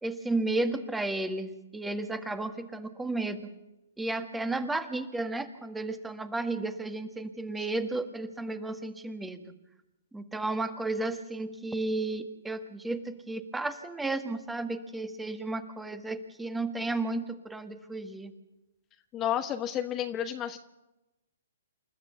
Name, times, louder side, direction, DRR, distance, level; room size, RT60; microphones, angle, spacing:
voice 1, 0.0-3.5 4.0-9.4 10.1-18.3, right 2 dB, 5° right, 9 dB, 1.6 m, -33 dB
voice 2, 19.1-20.6, left 10 dB, 25° left, 7 dB, 1.1 m, -31 dB
28.5 x 13.5 x 7.0 m, 0.96 s
figure-of-eight pair, 125°, 0 cm